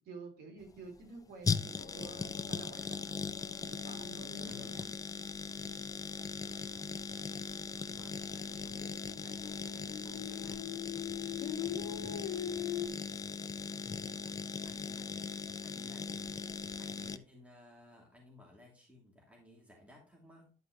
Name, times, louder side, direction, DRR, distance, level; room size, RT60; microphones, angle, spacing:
voice 1, 0.0-3.2 3.6-4.9 5.6-5.9 7.6-7.9 14.0-14.4, right 3 dB, 70° right, 2 dB, 3.1 m, -51 dB
sound 1, 0.6-17.2, left 5 dB, 20° left, 0.4 m, -39 dB
sound 2, 1.8-5.7 6.0-6.7 7.0-7.1 7.4-12.9, left 10 dB, 75° left, 1.5 m, -43 dB
voice 2, 4.4-4.8 6.4-7.0 7.8-12.7 14.6-15.1 15.6-16.4 16.8-20.5, left 1 dB, 10° right, -1 dB, 2.7 m, -58 dB
11.0 x 5.3 x 3.0 m, 0.37 s
cardioid pair, 110°, 17 cm